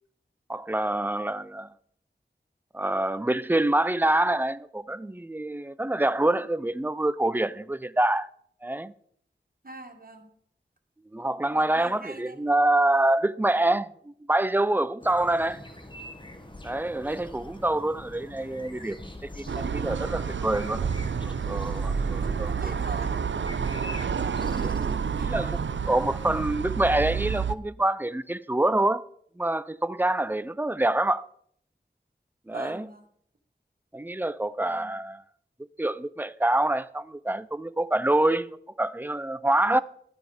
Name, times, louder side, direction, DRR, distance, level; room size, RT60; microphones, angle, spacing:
voice 1, 0.5-1.7 2.7-8.3 8.6-8.9 11.1-15.6 16.6-20.9 21.2-22.7 24.4-25.0 25.3-29.1 29.4-31.3 32.5-32.9 33.9-35.2 35.8-39.8, right 1 dB, 10° right, 0.5 m, -26 dB
voice 2, 9.6-10.3 11.5-12.4 22.2-23.2 24.1-24.7 25.0-25.3 32.5-33.0 34.7-35.0, right 2 dB, 50° right, 2.0 m, -43 dB
sound 1, 15.0-26.6, left 1 dB, 25° left, 1.6 m, -44 dB
sound 2, 19.5-27.6, right 6 dB, 85° right, 0.5 m, -29 dB
12.5 x 9.3 x 4.9 m
wide cardioid pair, 65°, 19 cm